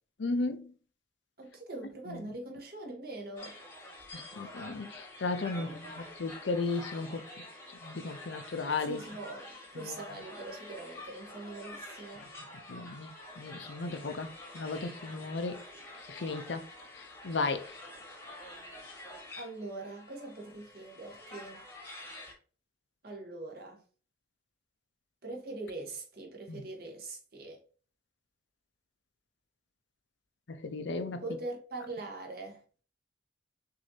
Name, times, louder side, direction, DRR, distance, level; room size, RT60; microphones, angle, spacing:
voice 1, 0.2-0.7 2.1-2.2 4.1-7.2 7.8-9.0 9.8-10.0 12.7-14.3 14.5-15.6 16.1-16.6 17.0-17.6 26.5-26.6 30.5-31.2, left 3 dB, 70° left, 0.6 m, -35 dB
voice 2, 1.4-3.6 5.5-6.1 8.9-12.2 19.4-21.7 23.0-23.8 25.2-27.6 31.2-32.6, right 2 dB, 50° right, 1.3 m, -42 dB
sound 1, 3.4-22.3, left 1 dB, 15° left, 1.1 m, -48 dB
6.2 x 2.7 x 2.7 m
head